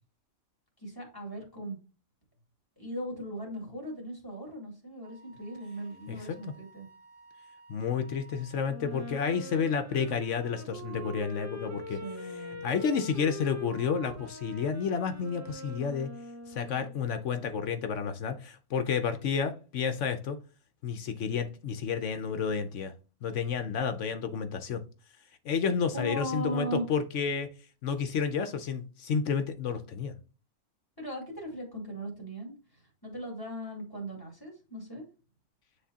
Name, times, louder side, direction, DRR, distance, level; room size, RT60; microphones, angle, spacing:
voice 1, 0.8-1.8 2.8-6.9 11.9-12.6 25.9-26.9 31.0-35.0, right 1 dB, 15° left, 2.4 m, -38 dB
Wind instrument woodwind instrument, 5.0-8.9, right 3 dB, 80° right, 1.4 m, -56 dB
voice 2, 7.7-12.0 12.6-16.1 16.5-20.4 20.8-22.9 23.2-24.8 25.4-27.5 27.8-30.2, left 6 dB, 75° left, 1.1 m, -30 dB
Wind instrument woodwind instrument 2, 8.6-17.0, left 1 dB, 25° right, 0.4 m, -43 dB
9.5 x 3.5 x 2.8 m
omnidirectional pair, 1.3 m